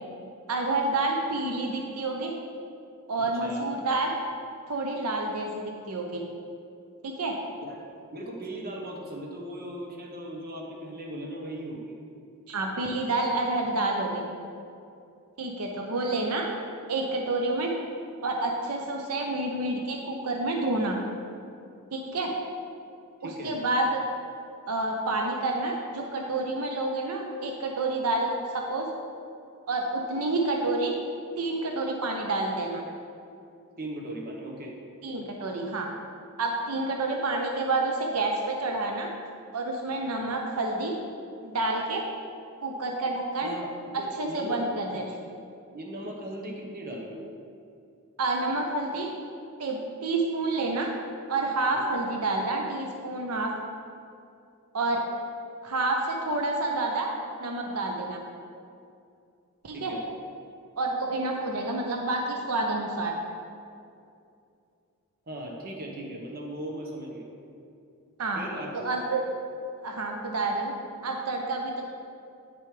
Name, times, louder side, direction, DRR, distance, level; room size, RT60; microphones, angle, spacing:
voice 1, 0.5-2.3 3.1-4.1 4.7-6.2 7.0-7.4 12.5-14.2 15.4-16.5 16.9-17.7 18.2-21.0 21.9-22.3 23.2-24.0 24.7-28.9 29.7-30.9 31.4-32.8 35.0-35.9 36.4-39.1 39.5-40.9 41.4-42.0 42.6-43.5 43.9-45.2 48.2-49.1 49.6-50.9 51.3-53.5 54.7-55.0 55.6-57.1 57.4-58.2 59.6-60.0 60.8-63.1 68.2-68.4 68.7-69.2 69.8-70.7 71.0-71.8, right 2 dB, 80° right, 1 dB, 0.7 m, -29 dB
voice 2, 3.2-3.6 7.6-11.9 23.2-23.5 33.8-34.7 43.4-43.7 43.9-44.6 45.7-47.2 51.7-51.8 59.7-60.0 65.3-67.3 68.3-68.8, right 1 dB, 45° right, -1 dB, 1.1 m, -38 dB
9.0 x 6.8 x 3.3 m, 2.5 s
head